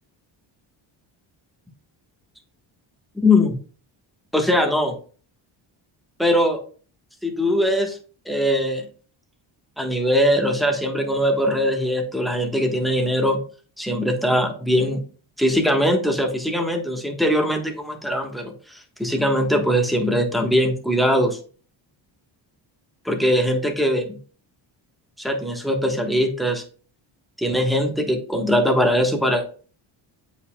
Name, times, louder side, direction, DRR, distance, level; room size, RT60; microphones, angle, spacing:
voice 1, 3.1-3.5 4.3-4.9 6.2-6.6 7.2-8.0 8.2-8.8 9.8-13.4 13.8-15.0 15.4-21.4 23.0-24.2 25.2-26.6 27.4-29.4, equal, ahead, 3 dB, 1.3 m, -21 dB
8.1 x 5.1 x 2.3 m, 0.41 s
cardioid pair, 95°, 49 cm